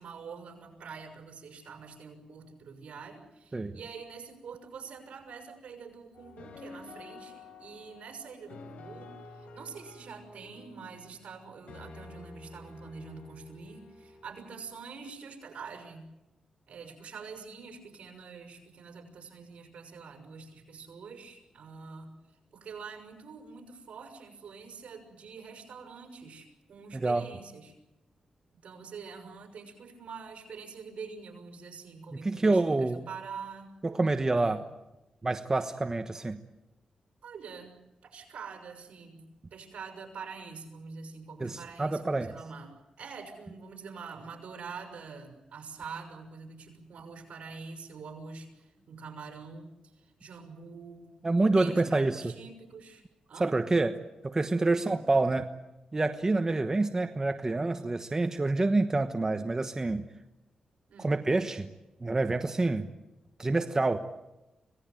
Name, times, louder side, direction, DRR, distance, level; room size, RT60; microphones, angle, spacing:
voice 1, 0.0-16.1 16.7-22.2 22.5-27.8 28.6-33.7 34.4-34.6 37.2-37.7 38.0-51.1 51.5-53.0 53.3-53.5 54.7-55.0 60.9-61.2, right 5 dB, 70° right, 4 dB, 6.1 m, -45 dB
sound 1, 6.1-14.7, left 3 dB, 85° left, 4.1 m, -50 dB
voice 2, 26.9-27.2 32.2-33.0 33.8-34.6 35.2-36.4 41.4-42.3 51.2-52.2 53.4-55.5 55.9-60.1 61.0-61.7 62.0-62.9 63.4-64.0, right 2 dB, 25° right, 7 dB, 1.2 m, -27 dB
26.0 x 18.5 x 9.2 m, 0.98 s
cardioid pair, 80°, 2 cm